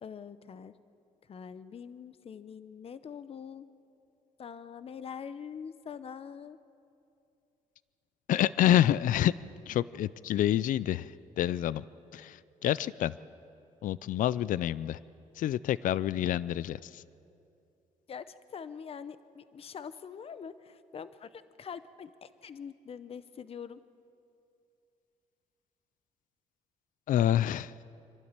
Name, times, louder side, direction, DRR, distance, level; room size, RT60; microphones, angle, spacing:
voice 1, 0.0-0.7 1.3-3.7 4.4-6.6 18.1-23.8, left 7 dB, 40° left, 14 dB, 0.8 m, -44 dB
voice 2, 8.3-9.3 9.7-11.8 12.1-13.1 13.8-15.0 15.4-17.0 27.1-27.7, left 12 dB, 65° left, 19 dB, 0.4 m, -27 dB
26.0 x 12.5 x 8.9 m, 2.6 s
cardioid pair, 100°, 15 cm